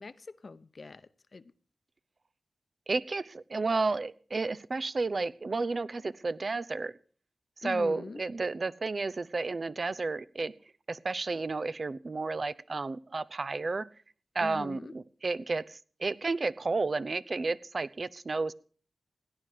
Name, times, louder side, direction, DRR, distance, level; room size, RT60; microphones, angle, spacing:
voice 1, 0.0-1.5 7.6-8.2 14.4-14.9, left 3 dB, 60° left, 0.9 m, -43 dB
voice 2, 2.9-7.0 7.6-10.5 10.9-13.9 14.3-18.5, right 3 dB, 55° right, 0.7 m, -32 dB
17.0 x 10.0 x 6.7 m
cardioid pair, 45°, 0 cm